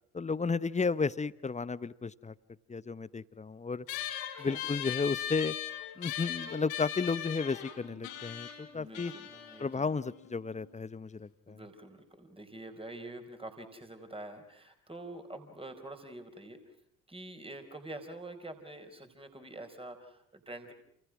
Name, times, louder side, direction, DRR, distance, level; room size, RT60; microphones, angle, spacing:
voice 1, 0.1-2.3 2.7-3.9 4.4-5.5 6.0-9.1 9.6-11.6, left 4 dB, 15° left, 18 dB, 1.0 m, -33 dB
sound 1, 3.9-10.7, left 11 dB, 75° left, 4.4 m, -40 dB
voice 2, 8.7-10.0 11.5-16.6 17.1-20.7, right 1 dB, 15° right, 6 dB, 4.7 m, -46 dB
29.5 x 29.0 x 6.2 m, 0.71 s
figure-of-eight pair, 50°, 41 cm